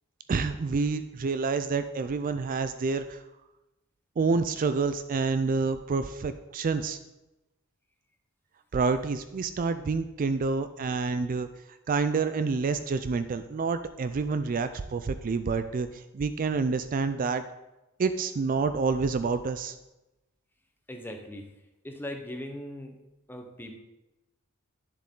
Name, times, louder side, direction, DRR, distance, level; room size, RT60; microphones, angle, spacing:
voice 1, 0.3-3.2 4.2-7.0 8.7-11.5 11.9-17.5 18.0-19.7, right 4 dB, 40° right, 11 dB, 0.4 m, -28 dB
voice 2, 20.9-21.5 21.8-23.0 23.3-23.8, left 1 dB, 10° left, 4 dB, 0.9 m, -39 dB
10.0 x 7.1 x 3.7 m, 0.98 s
head